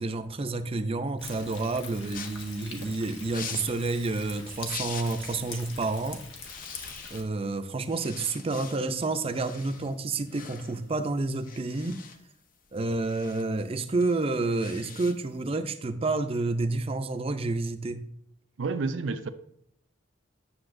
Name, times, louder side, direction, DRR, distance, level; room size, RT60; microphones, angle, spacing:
voice 1, 0.0-6.2 7.1-12.0 12.7-18.1, right 3 dB, 30° right, 0.5 m, -29 dB
Thunder, 1.2-7.2, left 4 dB, 90° left, 1.2 m, -44 dB
sound 1, 2.1-5.5 5.8-6.0 6.3-7.5 7.8-15.4, left 6 dB, 50° left, 0.6 m, -44 dB
voice 2, 18.6-19.3, right 4 dB, 75° right, 0.5 m, -29 dB
9.6 x 6.7 x 2.6 m
head